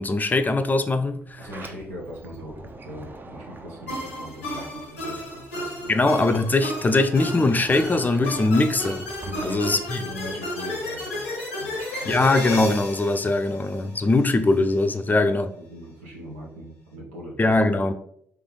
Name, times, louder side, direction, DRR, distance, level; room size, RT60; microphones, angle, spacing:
voice 1, 0.0-1.5 5.9-9.1 9.4-10.0 12.0-15.5 17.4-17.9, left 2 dB, 25° left, 0.5 m, -21 dB
Sliding door, 1.2-5.4 5.7-10.4, right 2 dB, 30° right, 0.6 m, -44 dB
voice 2, 1.4-6.0 9.2-11.3 11.6-12.2 15.1-17.5, equal, 85° right, 0.9 m, -40 dB
sound 1, 3.9-14.3, left 1 dB, 90° left, 0.7 m, -33 dB
3.3 x 3.1 x 3.7 m
hypercardioid pair, 40°, 7 cm